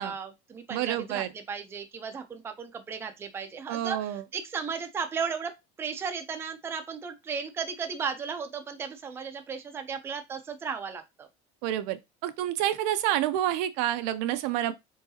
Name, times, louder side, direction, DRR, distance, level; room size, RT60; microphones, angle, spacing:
voice 1, 0.0-5.5 5.8-11.3, right 6 dB, 10° right, 0.5 m, -35 dB
voice 2, 0.7-1.3 3.7-4.2 11.6-14.7, right 12 dB, 65° right, 0.5 m, -28 dB
4.6 x 3.9 x 2.8 m
cardioid pair, 180°, 20 cm